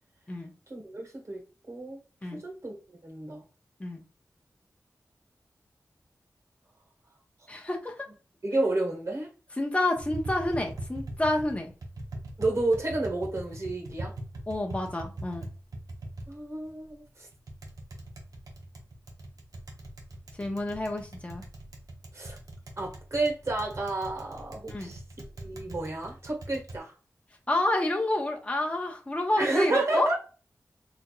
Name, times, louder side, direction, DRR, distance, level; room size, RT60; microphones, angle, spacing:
voice 1, 0.7-2.0 2.4-2.7 3.0-3.4 8.4-9.3 12.4-14.1 16.3-17.3 22.1-22.4 22.8-25.0 25.4-26.9 29.4-30.2, right 2 dB, 55° right, 1 dB, 1.5 m, -30 dB
voice 2, 7.5-8.1 9.6-11.7 14.5-15.5 20.4-21.4 24.7-24.9 27.5-30.1, left 1 dB, 20° left, 1 dB, 1.0 m, -29 dB
Tap, 10.0-26.8, right 1 dB, 80° right, 1.0 m, -42 dB
4.0 x 3.1 x 2.4 m, 0.35 s
wide cardioid pair, 75°, 6 cm